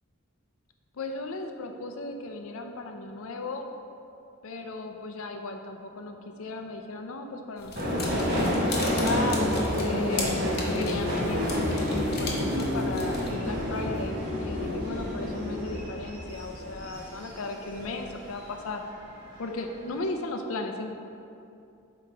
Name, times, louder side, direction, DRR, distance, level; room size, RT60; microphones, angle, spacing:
voice 1, 0.9-3.7 4.4-10.3 10.7-18.8 19.4-20.9, left 2 dB, 75° left, 5 dB, 0.5 m, -36 dB
sound 1, 7.6-13.3, left 3 dB, 45° left, 0.9 m, -38 dB
Subway metro underground, 7.8-18.5 18.8-19.6 19.8-20.0, left 1 dB, 50° right, 1.2 m, -29 dB
7.5 x 3.0 x 4.6 m, 2.6 s
head